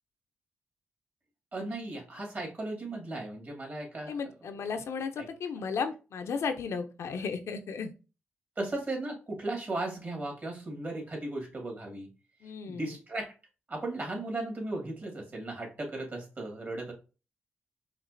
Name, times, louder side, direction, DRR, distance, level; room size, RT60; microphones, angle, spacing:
voice 1, 1.5-4.2 5.2-5.3 8.6-12.1 12.7-13.3 13.7-16.9, right 2 dB, 45° right, 1 dB, 2.0 m, -36 dB
voice 2, 4.1-7.9 12.4-12.9, left 5 dB, 75° left, 7 dB, 0.5 m, -34 dB
5.0 x 2.4 x 2.6 m, 0.32 s
supercardioid pair, 50°, 5 cm